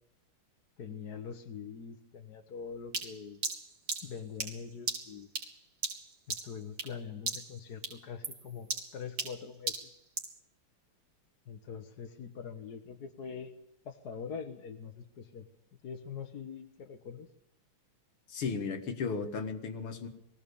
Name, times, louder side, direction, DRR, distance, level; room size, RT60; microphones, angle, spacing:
voice 1, 0.8-3.4 4.0-5.3 6.3-10.0 11.5-13.5 13.8-15.5 15.8-17.3, left 6 dB, 50° left, 4 dB, 1.5 m, -43 dB
sound 1, 2.9-7.0 7.3-7.6 7.8-10.4, right 4 dB, 45° right, 2.4 m, -37 dB
voice 2, 18.3-20.1, left 5 dB, 80° left, 6 dB, 2.7 m, -35 dB
22.0 x 17.0 x 7.0 m, 0.81 s
omnidirectional pair, 2.4 m